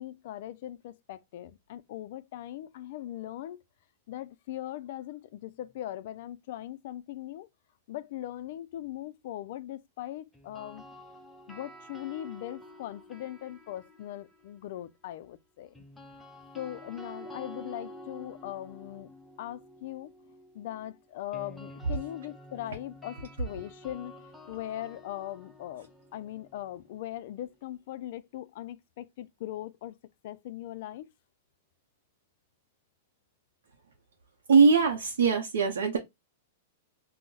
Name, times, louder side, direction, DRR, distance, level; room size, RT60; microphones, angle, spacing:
voice 1, 0.0-3.6 4.1-7.5 7.9-10.8 11.5-15.9 16.6-19.1 19.4-20.1 20.5-24.1 24.5-30.0 30.2-31.1, left 13 dB, 60° left, 0.3 m, -40 dB
sound 1, 10.3-14.5 15.7-27.6, equal, ahead, 0.5 m, -50 dB
voice 2, 34.5-36.0, right 5 dB, 90° right, 0.6 m, -21 dB
2.3 x 2.0 x 3.7 m
hypercardioid pair, 135°, 0 cm